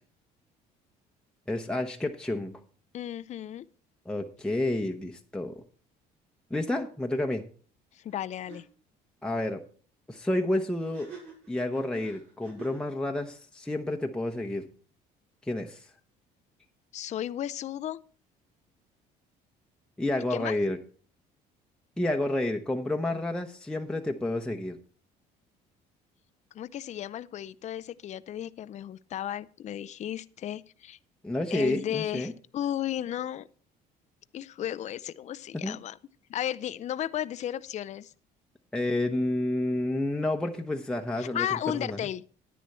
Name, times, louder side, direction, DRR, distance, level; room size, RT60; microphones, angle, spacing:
voice 1, 1.5-2.6 4.1-5.5 6.5-7.4 9.2-9.6 10.1-11.1 11.5-14.7 15.5-15.8 20.0-20.8 22.0-24.8 31.2-32.3 35.5-35.8 38.7-41.5 41.7-42.0, left 1 dB, 5° left, 0.9 m, -30 dB
voice 2, 2.9-3.7 7.9-8.6 16.9-18.0 20.3-20.6 26.5-31.0 31.5-33.5 34.3-36.0 36.3-38.1 41.2-42.2, left 11 dB, 45° left, 0.5 m, -34 dB
sound 1, 8.1-8.2 8.5-8.6 10.8-12.9, right 5 dB, 70° right, 5.6 m, -47 dB
10.0 x 9.5 x 4.2 m
supercardioid pair, 90°, 17 cm